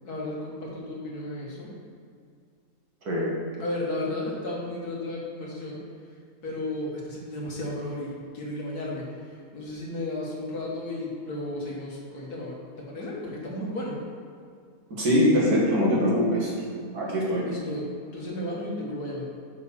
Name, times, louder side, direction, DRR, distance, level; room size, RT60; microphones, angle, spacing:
voice 1, 0.0-1.7 3.6-5.8 6.4-14.0 17.5-19.2, left 1 dB, 80° left, -4 dB, 2.3 m, -34 dB
voice 2, 14.9-16.5 16.9-17.4, equal, 75° right, -5 dB, 2.6 m, -22 dB
6.6 x 6.4 x 5.7 m, 2.3 s
omnidirectional pair, 1.6 m